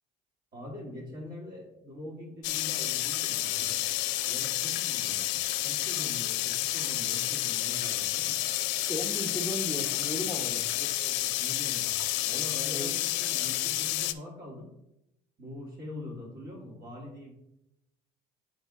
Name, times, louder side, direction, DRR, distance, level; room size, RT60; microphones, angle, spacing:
voice 1, 0.5-3.8 4.3-5.4 5.6-8.4 10.8-12.0 12.2-14.7 15.4-17.3, left 1 dB, 50° right, -4 dB, 1.8 m, -43 dB
sound 1, 2.4-14.1, left 15 dB, 80° left, 0.5 m, -30 dB
voice 2, 8.9-10.7 12.7-12.9, equal, 5° right, 1 dB, 1.1 m, -35 dB
7.7 x 3.6 x 3.7 m, 0.86 s
hypercardioid pair, 65°, 20 cm